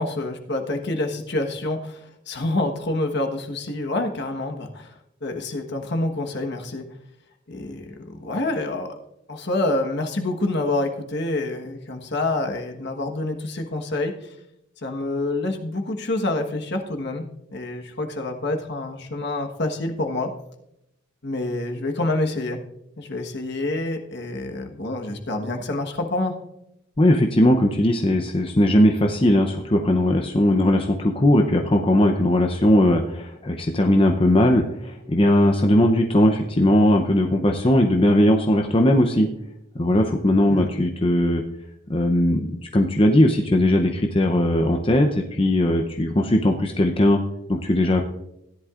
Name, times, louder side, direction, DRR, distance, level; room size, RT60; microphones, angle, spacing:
voice 1, 0.0-4.9 5.2-6.8 7.5-8.9 9.3-14.3 14.8-20.3 21.2-22.6 23.0-26.3 40.5-40.7, left 2 dB, 55° left, 4 dB, 1.3 m, -27 dB
voice 2, 27.0-39.3 39.8-41.4 41.9-47.2 47.5-48.0, left 1 dB, 25° left, 3 dB, 0.7 m, -19 dB
16.5 x 11.0 x 2.5 m, 0.83 s
head